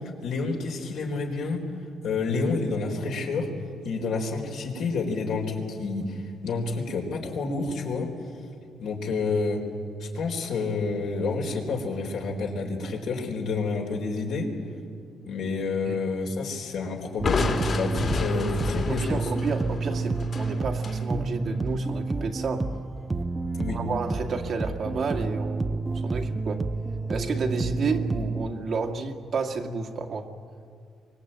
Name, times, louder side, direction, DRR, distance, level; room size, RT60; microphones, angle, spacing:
voice 1, 0.2-1.6 2.0-3.5 3.8-8.1 8.8-9.6 10.0-14.5 15.3-19.2 23.5-23.8, left 3 dB, 75° left, 1 dB, 4.2 m, -29 dB
Crushing, 17.2-21.0, left 4 dB, 50° left, 2.8 m, -30 dB
sound 1, 17.2-28.5, right 3 dB, 20° right, 0.9 m, -29 dB
voice 2, 18.9-22.8 23.7-26.6 27.1-30.3, right 4 dB, 60° right, 3 dB, 2.1 m, -31 dB
24.5 x 21.0 x 8.9 m, 2.4 s
cardioid pair, 90°, 0 cm